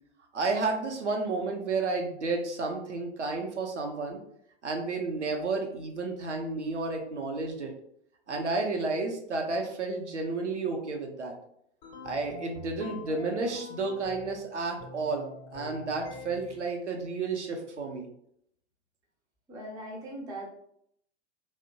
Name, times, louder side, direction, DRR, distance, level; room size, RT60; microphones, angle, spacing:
voice 1, 0.3-4.2 4.6-7.7 8.3-11.3 12.0-18.1, right 3 dB, 85° right, 2 dB, 0.6 m, -31 dB
sound 1, 11.8-14.4 14.8-16.7, left 3 dB, 45° left, 0.7 m, -45 dB
voice 2, 19.5-20.5, right 1 dB, 10° right, -2 dB, 0.3 m, -39 dB
2.7 x 2.1 x 2.6 m, 0.71 s
figure-of-eight pair, 95°, 34 cm